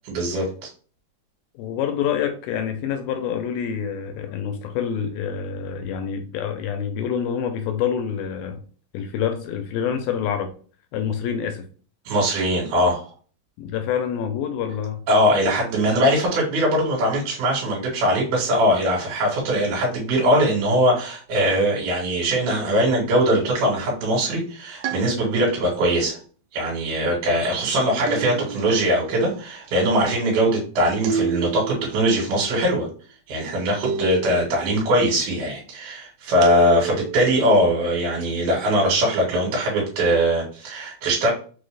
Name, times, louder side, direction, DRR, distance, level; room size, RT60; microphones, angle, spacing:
voice 1, 0.1-0.4 12.1-13.1 15.1-26.2 26.5-32.9 33.3-41.3, equal, 70° right, 3.0 m, -21 dB
voice 2, 1.6-8.6 8.9-10.5 10.9-11.7 13.6-15.0, left 8 dB, 85° left, 2.1 m, -27 dB
sound 1, 24.8-25.7 28.1-28.9 31.0-31.9 33.8-34.7 36.4-37.3, right 7 dB, 90° right, 2.7 m, -29 dB
6.2 x 2.1 x 3.2 m
omnidirectional pair, 4.6 m